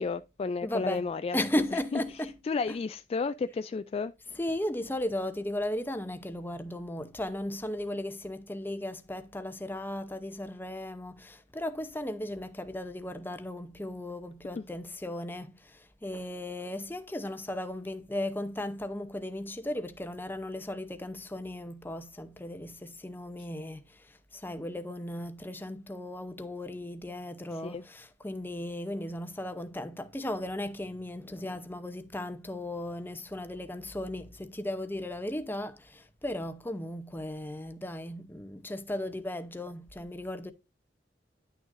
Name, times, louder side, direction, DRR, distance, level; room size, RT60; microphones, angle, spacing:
voice 1, 0.0-1.4 1.9-2.0 2.5-4.1 14.5-14.6 27.6-27.8, left 4 dB, 35° left, 0.3 m, -32 dB
voice 2, 0.6-2.4 2.7-2.8 4.3-40.5, left 1 dB, 10° left, 0.7 m, -36 dB
10.5 x 6.3 x 2.6 m
head